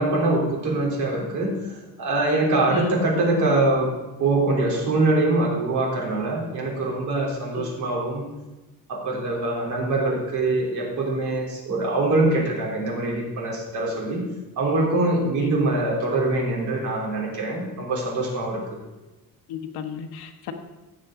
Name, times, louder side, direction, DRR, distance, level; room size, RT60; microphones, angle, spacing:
voice 1, 0.0-3.9 4.2-8.3 8.9-14.2 14.6-18.6, right 2 dB, 50° right, -3 dB, 3.5 m, -23 dB
voice 2, 2.7-3.0 7.5-7.7 15.4-15.5 19.5-20.5, left 6 dB, 90° left, 6 dB, 1.4 m, -33 dB
16.0 x 7.7 x 3.8 m, 1.1 s
cardioid pair, 180°, 37 cm